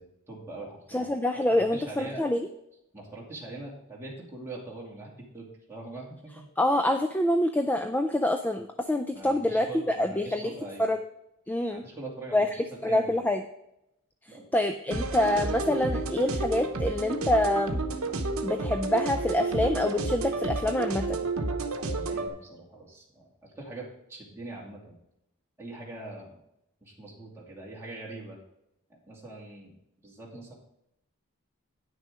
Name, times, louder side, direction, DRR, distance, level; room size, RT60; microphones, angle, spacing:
voice 1, 0.0-1.0 1.5-2.2 2.9-6.5 9.1-10.9 11.7-13.2 14.3-14.4 21.9-23.3 23.6-25.0 25.6-26.4 26.8-28.4 29.0-29.8 30.0-30.5, right 2 dB, 10° right, -5 dB, 2.5 m, -42 dB
voice 2, 0.9-2.5 6.6-10.5 10.8-11.0 11.5-11.8 12.3-13.4 14.5-17.8 18.4-21.2, left 1 dB, 10° left, 6 dB, 0.4 m, -26 dB
sound 1, 14.9-22.3, right 2 dB, 70° right, 1.0 m, -31 dB
9.8 x 6.5 x 4.9 m, 0.82 s
head